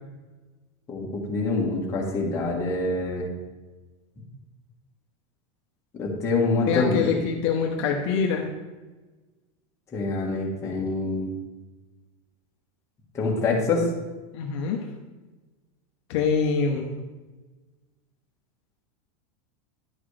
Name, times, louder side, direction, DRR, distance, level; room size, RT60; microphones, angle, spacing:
voice 1, 0.9-3.2 6.0-7.1 9.9-11.3 13.1-13.9, left 3 dB, 15° left, -3 dB, 1.4 m, -25 dB
voice 2, 6.7-8.5 14.3-14.9 16.1-16.9, left 6 dB, 50° left, 1 dB, 0.9 m, -25 dB
10.5 x 6.0 x 3.3 m, 1.2 s
supercardioid pair, 175°, 18 cm